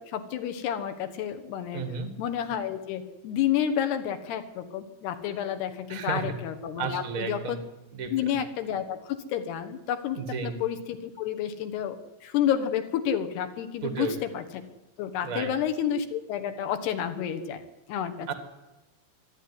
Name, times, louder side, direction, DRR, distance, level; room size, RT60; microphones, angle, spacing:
voice 1, 0.0-1.8 2.2-7.6 8.1-14.4 15.0-17.6 17.9-18.3, left 9 dB, 70° left, 7 dB, 3.3 m, -30 dB
voice 2, 1.7-2.1 5.9-6.3 6.8-7.6 7.9-8.3 10.1-10.6 13.8-14.1 15.2-15.5 18.3-18.4, right 5 dB, 40° right, 8 dB, 1.1 m, -33 dB
24.0 x 12.5 x 9.7 m, 1.0 s
omnidirectional pair, 5.1 m